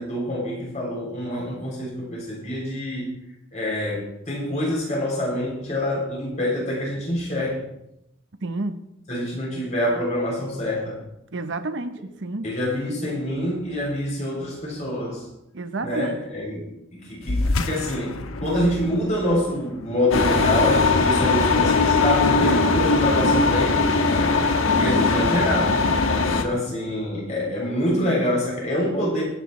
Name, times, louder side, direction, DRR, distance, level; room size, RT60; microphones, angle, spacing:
voice 1, 0.0-3.1 3.5-7.6 9.1-11.0 12.4-15.3 15.8-16.6 17.0-24.1 24.7-25.8 26.3-29.2, left 1 dB, 35° left, 6.8 m, -26 dB
voice 2, 8.4-8.8 11.3-12.5 15.5-16.2, right 2 dB, 60° right, 0.9 m, -30 dB
sound 1, 17.2-22.1, left 2 dB, 85° left, 1.0 m, -31 dB
sound 2, 20.1-26.4, left 3 dB, 70° left, 1.3 m, -20 dB
25.0 x 9.9 x 3.2 m
head